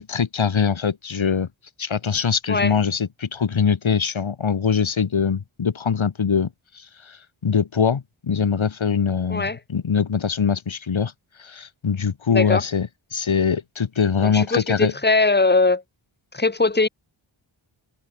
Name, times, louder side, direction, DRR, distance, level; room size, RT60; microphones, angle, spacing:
voice 1, 0.0-1.5 1.8-6.5 6.7-11.1 11.4-14.9, left 6 dB, 70° left, 1.7 m, -23 dB
voice 2, 12.3-12.6 14.2-15.8 16.3-16.9, left 3 dB, 20° left, 1.8 m, -20 dB
wide cardioid pair, 60°, 49 cm